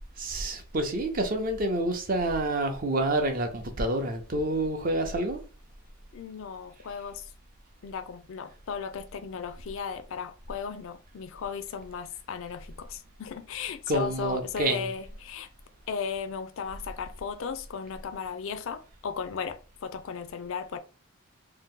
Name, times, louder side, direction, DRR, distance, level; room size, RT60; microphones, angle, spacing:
voice 1, 0.2-5.4 13.9-14.9, right 1 dB, 40° right, 0.5 m, -28 dB
voice 2, 6.1-7.2 7.8-15.5 15.9-20.8, left 6 dB, 60° left, 0.4 m, -36 dB
2.8 x 2.1 x 3.6 m
head